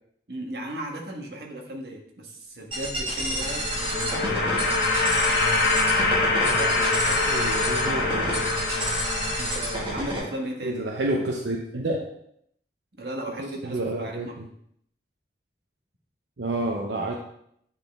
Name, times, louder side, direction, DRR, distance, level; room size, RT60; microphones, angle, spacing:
voice 1, 0.3-4.3 9.4-10.8 13.0-14.3, right 1 dB, 70° right, 0 dB, 1.3 m, -36 dB
sound 1, 2.7-10.2, right 1 dB, 30° right, 1.7 m, -30 dB
sound 2, 3.2-10.3, left 3 dB, 60° left, 1.0 m, -25 dB
voice 2, 6.4-8.5 10.6-12.1 13.6-14.5 16.4-17.1, right 2 dB, 90° right, 0 dB, 0.7 m, -30 dB
9.0 x 4.1 x 3.5 m, 0.71 s
head